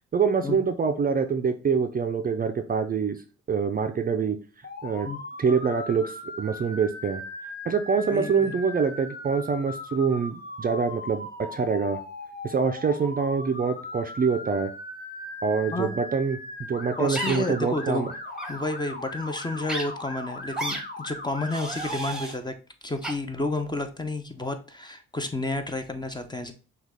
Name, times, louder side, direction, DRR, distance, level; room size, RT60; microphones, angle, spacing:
voice 1, 0.1-3.2 3.5-4.4 4.8-5.1 5.4-7.2 7.6-12.0 12.4-14.7 15.4-18.1, right 5 dB, 30° right, 7 dB, 0.5 m, -25 dB
Motor vehicle (road) / Siren, 4.6-22.0, left 2 dB, 30° left, 1.0 m, -39 dB
voice 2, 8.1-8.5 15.7-16.0 17.0-18.1 18.5-22.5 22.8-26.5, left 2 dB, 15° left, 7 dB, 0.6 m, -31 dB
sound 1, 17.1-17.4 18.3-18.5 19.7-19.8 20.5-20.8 21.5-22.3 23.0-23.1, right 2 dB, ahead, 1.1 m, -32 dB
6.0 x 2.4 x 3.4 m, 0.36 s
cardioid pair, 90°, 30 cm